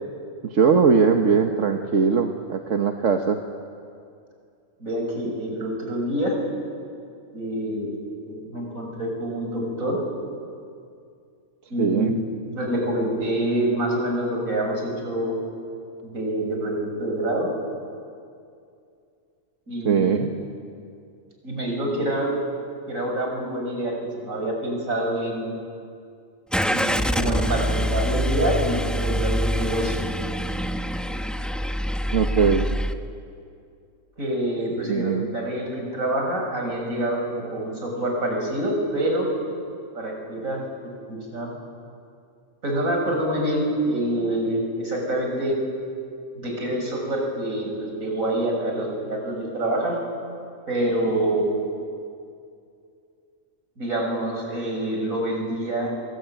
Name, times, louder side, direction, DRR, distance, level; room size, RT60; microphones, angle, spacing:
voice 1, 0.5-3.4 11.8-12.1 19.8-20.3 32.1-32.6 34.8-35.3, right 5 dB, 70° right, 4 dB, 1.6 m, -20 dB
voice 2, 4.8-6.3 7.3-8.0 8.3-10.0 11.7-12.1 12.5-15.4 16.0-17.5 19.7-20.3 21.4-22.4 22.9-25.5 26.7-30.0 34.2-39.3 39.9-41.5 42.6-45.6 46.4-50.0 50.7-51.5 53.8-55.9, right 1 dB, 85° right, 0 dB, 7.0 m, -26 dB
Car / Engine starting, 26.5-32.9, equal, ahead, 0.8 m, -25 dB
27.5 x 23.5 x 9.2 m, 2.4 s
omnidirectional pair, 1.4 m